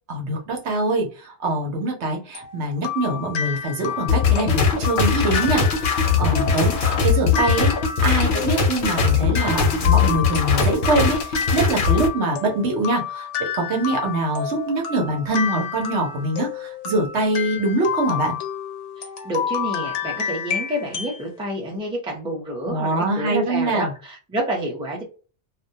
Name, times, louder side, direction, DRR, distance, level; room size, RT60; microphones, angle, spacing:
voice 1, 0.1-7.7 8.0-18.4 22.7-23.9, right 2 dB, 70° right, 1 dB, 1.0 m, -24 dB
sound 1, 2.3-21.2, left 8 dB, 85° left, 0.9 m, -30 dB
sound 2, 4.1-12.1, left 5 dB, 55° left, 0.7 m, -20 dB
voice 2, 19.0-25.0, right 1 dB, 5° right, -1 dB, 0.6 m, -29 dB
2.3 x 2.1 x 2.7 m, 0.35 s
omnidirectional pair, 1.2 m